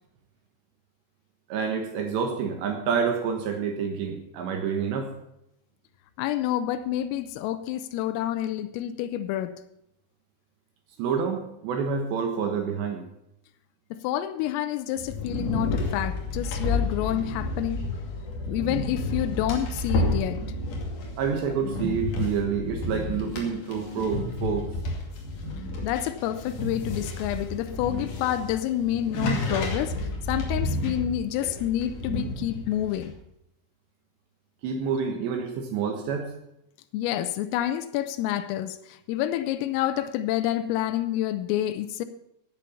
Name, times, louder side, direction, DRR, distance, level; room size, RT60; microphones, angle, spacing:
voice 1, 1.5-5.1 11.0-13.1 21.2-24.7 34.6-36.3, right 6 dB, 70° right, 4 dB, 3.2 m, -28 dB
voice 2, 6.2-9.6 13.9-17.8 18.5-20.4 25.8-33.1 36.9-42.1, left 12 dB, 90° left, 9 dB, 3.4 m, -28 dB
sound 1, 15.0-33.1, left 2 dB, 45° left, 3.4 m, -31 dB
16.5 x 8.6 x 5.6 m, 0.79 s
omnidirectional pair, 5.9 m